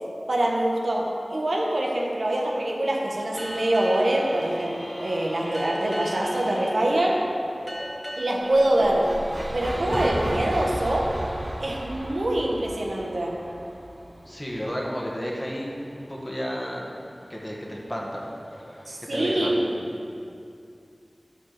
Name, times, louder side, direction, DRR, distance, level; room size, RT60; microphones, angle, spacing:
voice 1, 0.3-7.3 8.2-9.1 9.5-11.1 11.6-13.4 18.9-19.6, right 1 dB, 75° right, -2 dB, 1.3 m, -24 dB
sound 1, 3.3-19.6, left 1 dB, 50° left, 1.6 m, -43 dB
sound 2, 3.4-12.7, equal, 5° right, 1.8 m, -42 dB
sound 3, 8.4-14.6, right 1 dB, 35° right, 0.6 m, -34 dB
voice 2, 14.3-17.0 17.3-18.3 18.7-19.5, equal, 15° left, -3 dB, 1.7 m, -32 dB
12.0 x 5.1 x 6.6 m, 2.5 s
wide cardioid pair, 65°, 0 cm